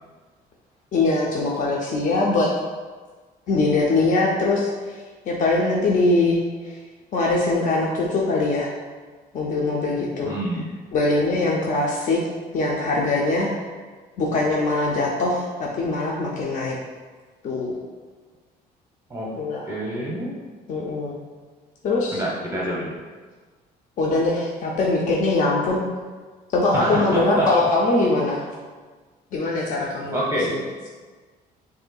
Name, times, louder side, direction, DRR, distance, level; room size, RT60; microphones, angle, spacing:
voice 1, 0.9-2.5 3.5-5.0 5.3-6.8 7.1-8.7 9.3-10.3 10.9-12.2 12.5-13.5 14.2-16.7 17.4-17.8 19.3-19.7 20.7-21.2 21.8-22.2 24.0-25.8 26.5-28.4 29.3-30.6, left 2 dB, 50° left, -3 dB, 0.6 m, -22 dB
voice 2, 10.2-10.7 19.1-19.4 19.7-20.3 22.1-22.9 26.7-27.5 30.1-30.5, right 1 dB, 15° right, -5 dB, 0.7 m, -26 dB
6.5 x 2.7 x 2.3 m, 1.4 s
cardioid pair, 110°, 17 cm